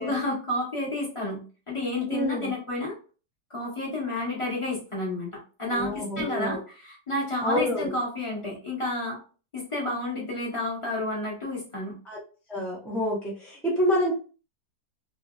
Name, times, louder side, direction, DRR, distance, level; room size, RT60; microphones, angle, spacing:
voice 1, 0.0-1.4 1.7-2.9 3.5-9.2 9.5-11.9, left 1 dB, 20° left, -4 dB, 1.1 m, -30 dB
voice 2, 2.1-2.5 5.7-6.6 7.4-7.9 12.1-12.2 12.5-14.1, left 1 dB, ahead, -5 dB, 0.3 m, -27 dB
3.0 x 2.6 x 2.3 m, 0.36 s
omnidirectional pair, 1.7 m